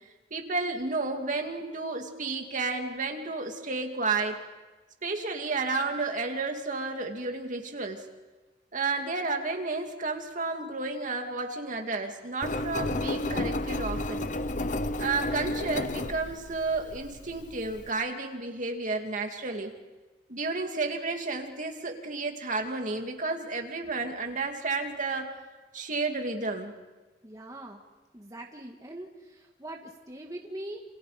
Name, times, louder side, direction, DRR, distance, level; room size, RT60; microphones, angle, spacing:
voice 1, 0.3-4.4 5.0-8.0 8.7-14.3 15.0-19.7 20.3-25.3 25.7-26.7, right 3 dB, 45° right, 3 dB, 2.5 m, -32 dB
Engine, 12.4-17.9, left 1 dB, 45° left, 0.9 m, -32 dB
voice 2, 27.2-27.8 28.1-30.8, right 1 dB, 20° right, 1 dB, 1.8 m, -42 dB
28.5 x 28.5 x 5.1 m, 1.2 s
head